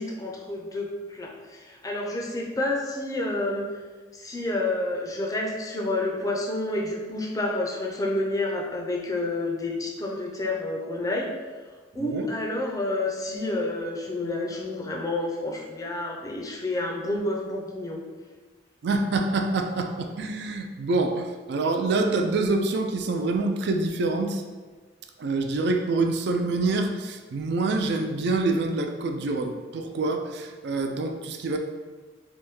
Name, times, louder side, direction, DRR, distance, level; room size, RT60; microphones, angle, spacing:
voice 1, 0.0-3.7 4.1-11.3 11.9-18.0, left 2 dB, 20° left, -1 dB, 0.4 m, -29 dB
voice 2, 12.0-12.3 18.8-24.4 25.2-31.6, right 3 dB, 60° right, 6 dB, 0.3 m, -26 dB
3.4 x 2.6 x 3.0 m, 1.4 s
head